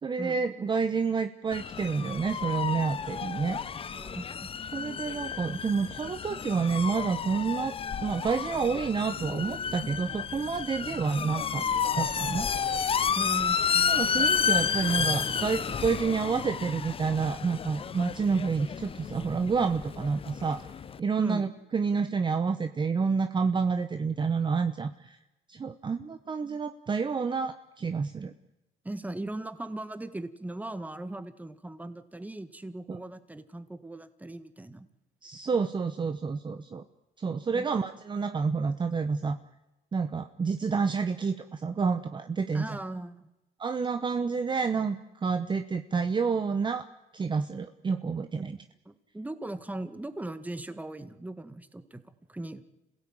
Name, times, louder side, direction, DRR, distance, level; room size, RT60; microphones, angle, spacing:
voice 1, 0.0-3.6 4.7-7.8 8.0-11.6 11.9-12.5 12.9-13.1 13.9-20.7 21.0-25.2 25.5-28.3 32.9-33.0 35.2-36.8 37.2-39.4 39.9-42.8 43.6-46.9 47.1-48.6, right 5 dB, 30° right, 9 dB, 1.0 m, -29 dB
sound 1, 1.5-21.0, left 7 dB, 35° left, 0.8 m, -31 dB
voice 2, 3.9-4.5 13.1-14.3 21.2-21.4 28.8-34.9 37.5-37.7 42.5-43.3 48.8-52.0 52.3-52.6, right 2 dB, 10° right, 11 dB, 1.7 m, -39 dB
27.5 x 17.0 x 8.9 m, 0.98 s
cardioid pair, 110°, 17 cm